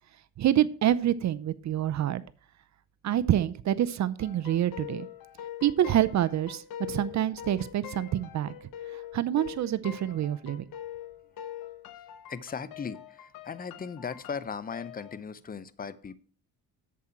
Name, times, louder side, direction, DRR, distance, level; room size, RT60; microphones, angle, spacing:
voice 1, 0.4-2.2 3.0-5.1 5.6-6.6 6.9-8.5 8.9-10.7, right 11 dB, 50° right, 14 dB, 0.6 m, -27 dB
sound 1, 4.2-15.2, left 11 dB, 75° left, 1.0 m, -44 dB
voice 2, 12.1-16.1, left 6 dB, 25° left, 16 dB, 0.7 m, -38 dB
8.4 x 7.4 x 4.4 m, 0.43 s
cardioid pair, 100°, 35 cm